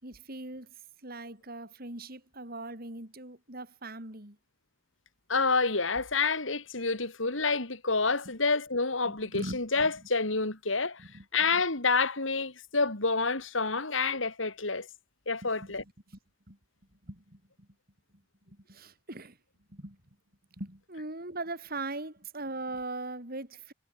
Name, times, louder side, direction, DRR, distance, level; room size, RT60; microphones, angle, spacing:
voice 1, 0.0-4.4 9.0-9.9 11.0-11.2 15.4-15.7 16.5-16.6 17.0-17.7 18.5-19.4 19.7-20.0 20.6-23.7, right 2 dB, 50° right, 5.1 m, -40 dB
voice 2, 5.3-11.0 11.3-14.9 15.3-15.8, left 4 dB, 85° left, 4.0 m, -28 dB
head